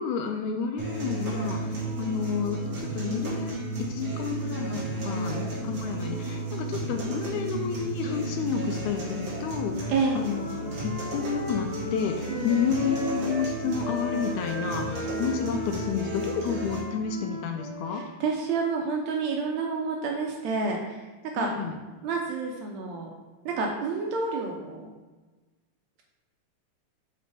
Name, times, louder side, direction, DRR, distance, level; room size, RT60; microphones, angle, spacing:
voice 1, 0.0-3.5 3.8-10.5 10.8-18.0 21.4-21.7, left 6 dB, 80° left, 5 dB, 1.9 m, -30 dB
sound 1, 0.8-16.8, right 2 dB, 45° right, 2.1 m, -33 dB
Wind instrument woodwind instrument, 9.6-13.5 13.8-18.1, left 2 dB, 45° left, 0.7 m, -38 dB
voice 2, 9.9-10.3 12.3-12.5 17.9-21.5 22.0-23.1 23.5-24.9, right 4 dB, 75° right, 1 dB, 1.8 m, -29 dB
7.6 x 4.2 x 3.4 m, 1.3 s
omnidirectional pair, 3.6 m